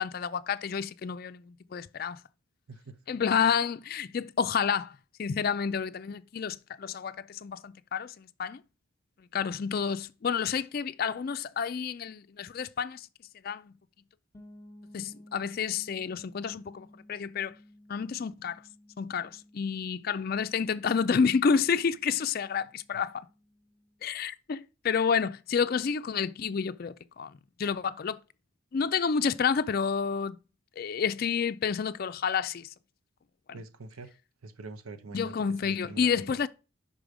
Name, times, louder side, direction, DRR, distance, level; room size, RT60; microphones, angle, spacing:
voice 1, 0.0-2.2 3.1-8.6 9.3-13.1 13.4-13.7 14.9-17.6 17.9-18.6 19.0-23.3 24.0-28.2 28.7-30.4 30.8-32.7 35.1-36.5, left 6 dB, 45° left, 0.3 m, -29 dB
sound 1, 14.3-24.0, left 1 dB, 15° left, 1.2 m, -56 dB
voice 2, 33.5-34.1 34.4-36.4, right 3 dB, 90° right, 0.8 m, -45 dB
5.4 x 5.1 x 6.1 m
head